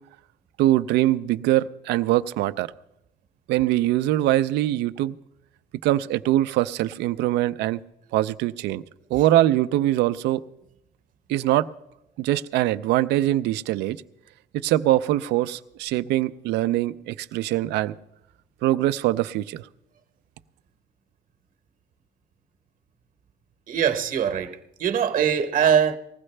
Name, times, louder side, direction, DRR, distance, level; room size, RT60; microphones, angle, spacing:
voice 1, 0.6-2.7 3.5-5.1 5.8-7.8 8.1-8.8 9.1-10.4 11.3-11.7 12.2-14.0 14.5-18.0 18.6-19.6, right 14 dB, 85° right, 0.5 m, -22 dB
voice 2, 23.7-26.0, right 8 dB, 50° right, 1.0 m, -22 dB
19.5 x 15.0 x 3.3 m
cardioid pair, 110°, 17 cm